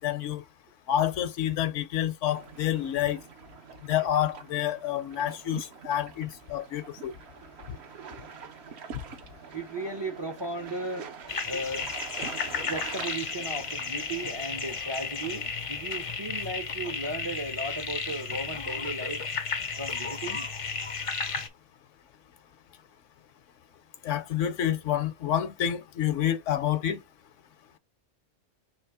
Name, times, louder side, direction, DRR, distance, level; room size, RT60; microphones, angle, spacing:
voice 1, 0.0-0.4 0.9-3.2 3.8-7.1 24.0-27.0, left 11 dB, 75° left, 1.0 m, -28 dB
sound 1, 2.3-14.8, right 6 dB, 65° right, 0.9 m, -45 dB
voice 2, 9.5-11.1 11.5-11.9 12.6-19.2 19.8-20.5, right 2 dB, 35° right, 0.4 m, -36 dB
sound 2, 11.3-21.5, left 5 dB, 50° left, 0.4 m, -33 dB
3.5 x 3.0 x 4.7 m
omnidirectional pair, 1.3 m